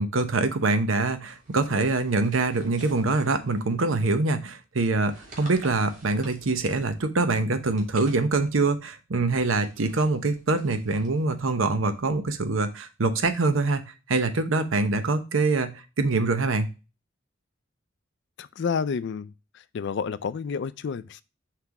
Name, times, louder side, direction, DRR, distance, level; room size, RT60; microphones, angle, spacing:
voice 1, 0.0-13.8 14.1-15.7 16.0-16.7, right 3 dB, 85° right, 0.8 m, -24 dB
sound 1, 1.2-4.0 4.8-7.0 7.6-8.7 9.3-12.2, right 2 dB, 40° right, 2.4 m, -50 dB
voice 2, 18.4-19.3 19.7-21.2, left 6 dB, 60° left, 0.4 m, -29 dB
5.9 x 3.3 x 5.8 m
head